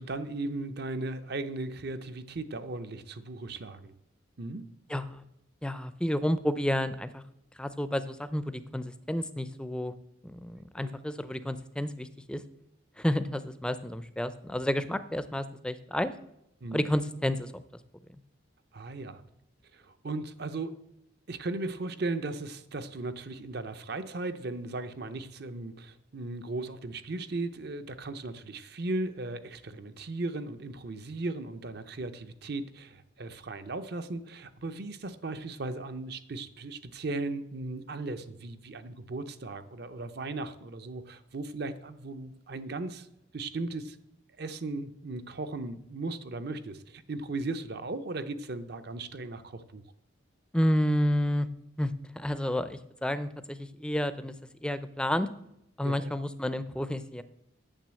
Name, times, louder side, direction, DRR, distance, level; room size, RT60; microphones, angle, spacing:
voice 1, 0.0-3.9 4.4-4.7 10.5-10.9 16.6-16.8 18.7-19.2 19.7-20.7 21.3-43.1 43.3-44.0 44.4-49.8 55.8-56.1, right 2 dB, 55° right, 10 dB, 0.7 m, -37 dB
voice 2, 4.9-5.2 5.6-7.2 7.6-9.9 10.2-12.4 13.0-16.1 16.7-17.5 50.5-51.5 51.8-54.3 54.6-55.3 55.8-57.2, left 1 dB, 5° left, 13 dB, 0.4 m, -30 dB
9.0 x 6.9 x 7.5 m, 0.82 s
head